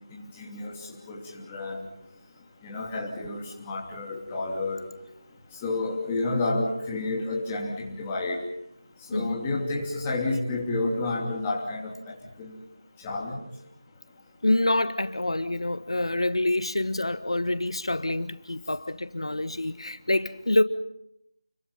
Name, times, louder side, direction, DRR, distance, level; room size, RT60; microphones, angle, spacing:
voice 1, 0.1-0.7 1.1-1.9 2.6-4.9 5.6-8.4 9.1-12.6 13.0-13.4, left 2 dB, 10° left, -2 dB, 3.0 m, -30 dB
voice 2, 9.1-9.4 14.4-20.6, left 1 dB, 85° left, 12 dB, 1.6 m, -26 dB
29.5 x 23.5 x 5.7 m, 0.78 s
figure-of-eight pair, 175°, 3 cm